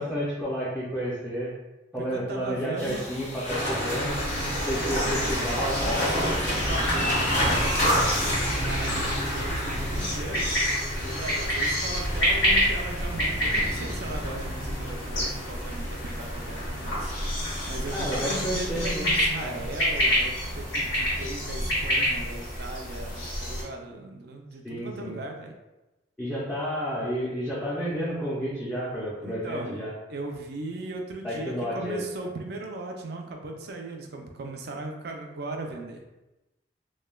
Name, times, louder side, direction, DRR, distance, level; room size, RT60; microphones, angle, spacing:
voice 1, 0.0-1.5 1.9-4.1 4.6-6.1 17.9-19.1 19.4-19.6 24.6-25.2 26.2-29.9 31.2-32.0, equal, 5° left, -8 dB, 0.4 m, -31 dB
voice 2, 2.0-3.0 4.6-5.7 6.0-10.5 11.0-17.1 17.7-25.5 29.2-29.8 30.1-36.0, right 2 dB, 55° right, 2 dB, 0.4 m, -38 dB
sound 1, 2.8-10.0, equal, 35° left, 0.7 m, -33 dB
sound 2, 3.4-20.6, equal, 70° left, 1.3 m, -31 dB
sound 3, 4.1-23.6, equal, 90° left, 1.3 m, -29 dB
3.1 x 2.1 x 2.2 m, 1.0 s
head